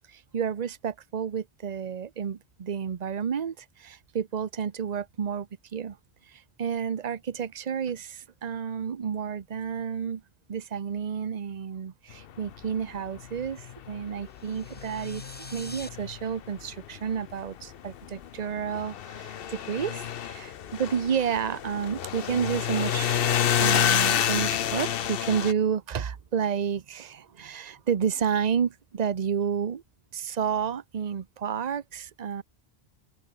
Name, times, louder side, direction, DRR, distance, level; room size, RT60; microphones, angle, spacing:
voice 1, 0.1-6.0 6.3-10.2 10.5-15.2 15.5-23.3 23.6-29.8 30.1-32.4, right 7 dB, 45° right, 0.9 m, -30 dB
sound 1, 12.6-12.7 12.9-17.3 17.6-25.5, left 10 dB, 65° left, 0.9 m, -29 dB
sound 2, 14.3-15.9, equal, 10° left, 6.7 m, -46 dB
open air
omnidirectional pair, 1.1 m